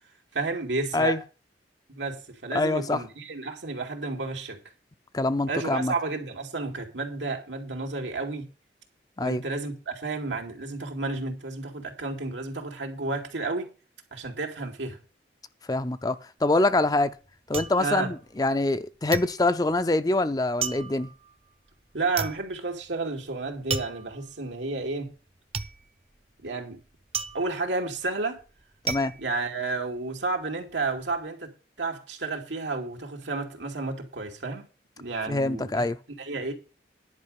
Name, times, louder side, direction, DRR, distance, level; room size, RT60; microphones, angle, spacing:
voice 1, 0.3-1.2 1.9-4.6 5.5-8.5 9.2-13.7 14.1-15.0 17.8-18.1 21.9-25.1 26.4-26.8 27.3-28.4 29.2-31.5 31.8-34.7 35.0-35.8 36.2-36.5, right 3 dB, 90° right, 2.6 m, -31 dB
voice 2, 2.5-3.0 5.1-5.9 9.2-9.4 15.7-17.2 17.5-21.1 28.8-29.1 35.3-36.0, left 2 dB, 20° left, 0.5 m, -25 dB
sound 1, 16.5-18.8 19.1-30.2 30.6-31.1, right 5 dB, 35° right, 0.7 m, -36 dB
11.0 x 5.1 x 8.1 m
head